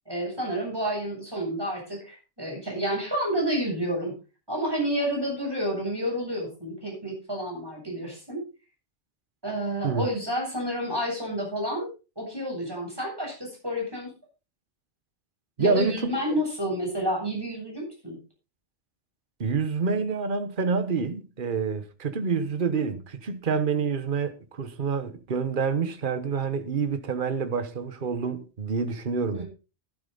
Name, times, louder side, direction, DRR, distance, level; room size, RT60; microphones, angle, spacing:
voice 1, 0.1-4.1 4.5-8.4 9.4-11.9 12.2-14.1 15.6-18.2 29.3-29.5, equal, 20° right, 7.9 m, -30 dB
voice 2, 15.6-16.1 19.4-29.4, right 5 dB, 45° right, 1.3 m, -27 dB
12.0 x 12.0 x 3.9 m
omnidirectional pair, 1.2 m